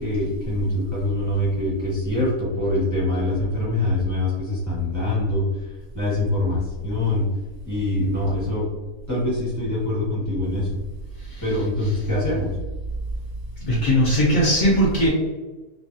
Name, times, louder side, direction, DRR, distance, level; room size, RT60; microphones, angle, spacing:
voice 1, 0.0-5.4 5.9-7.2 7.6-8.7 9.1-10.8 11.4-12.5, left 1 dB, 10° left, -8 dB, 1.2 m, -24 dB
voice 2, 13.7-15.1, equal, 55° left, -8 dB, 0.5 m, -19 dB
3.0 x 2.3 x 2.6 m, 1.2 s
omnidirectional pair, 1.7 m